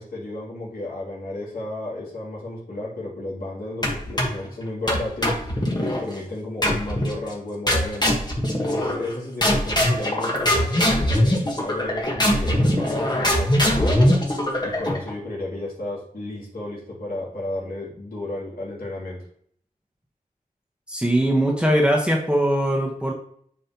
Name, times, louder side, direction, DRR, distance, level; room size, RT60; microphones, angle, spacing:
voice 1, 0.0-8.1 8.6-19.2, left 2 dB, 70° left, -7 dB, 2.9 m, -33 dB
sound 1, 3.8-4.5 4.9-6.0 6.6-7.2 7.7-9.1 9.4-15.1, left 1 dB, 30° left, 1.5 m, -22 dB
voice 2, 20.9-23.1, right 1 dB, 5° right, -2 dB, 1.3 m, -21 dB
8.8 x 5.5 x 3.0 m, 0.63 s
wide cardioid pair, 80°, 15 cm